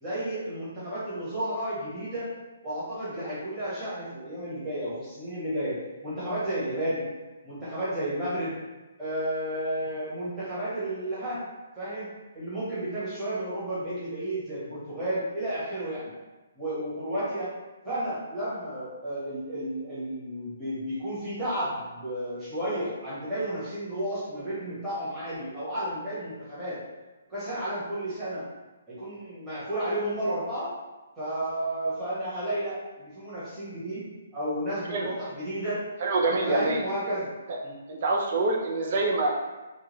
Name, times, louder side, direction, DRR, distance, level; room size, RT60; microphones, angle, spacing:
voice 1, 0.0-2.3 2.6-5.8 6.0-7.1 7.4-8.5 9.0-11.4 11.7-12.1 12.3-16.1 16.5-17.5 17.8-26.8 27.3-28.4 28.9-30.7 31.2-34.0 34.3-35.8 36.4-37.3 37.6-37.8, right 1 dB, 10° right, -14 dB, 1.5 m, -32 dB
voice 2, 36.0-36.8 37.5-37.6 37.9-39.3, right 2 dB, 40° right, -1 dB, 0.6 m, -26 dB
3.6 x 2.3 x 3.1 m, 1.2 s
hypercardioid pair, 170°, 0 cm